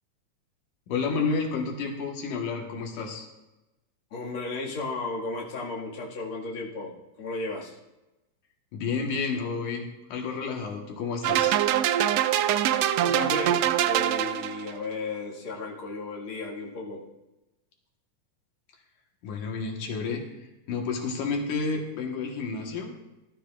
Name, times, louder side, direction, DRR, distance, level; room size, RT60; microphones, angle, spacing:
voice 1, 0.9-3.3 8.7-11.6 19.2-20.2 20.7-22.9, left 4 dB, 90° left, 1 dB, 3.0 m, -30 dB
voice 2, 4.1-7.8 13.0-17.1, left 3 dB, 45° left, -4 dB, 2.6 m, -34 dB
sound 1, 11.2-14.7, right 11 dB, 85° right, 1.4 m, -24 dB
19.0 x 11.5 x 2.5 m, 1.0 s
omnidirectional pair, 3.5 m